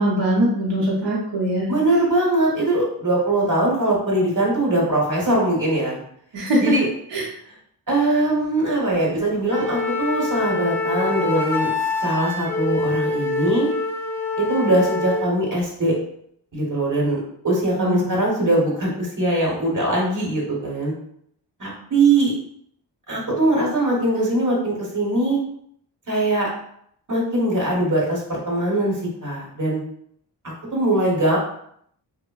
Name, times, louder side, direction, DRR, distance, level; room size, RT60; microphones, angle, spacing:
voice 1, 0.0-1.7 6.3-6.7 7.1-7.2 17.8-18.2, right 1 dB, 80° right, -4 dB, 0.7 m, -21 dB
voice 2, 1.7-6.0 6.6-6.9 7.9-11.7 12.0-13.7 14.4-15.9 16.5-17.2 17.4-20.9 21.6-22.3 23.1-25.4 26.1-26.5 27.1-29.8 30.7-31.4, right 1 dB, 45° right, -3 dB, 1.1 m, -21 dB
Wind instrument woodwind instrument, 9.5-15.3, left 3 dB, 5° left, 0.4 m, -25 dB
3.3 x 2.0 x 2.3 m, 0.68 s
cardioid pair, 60°, 43 cm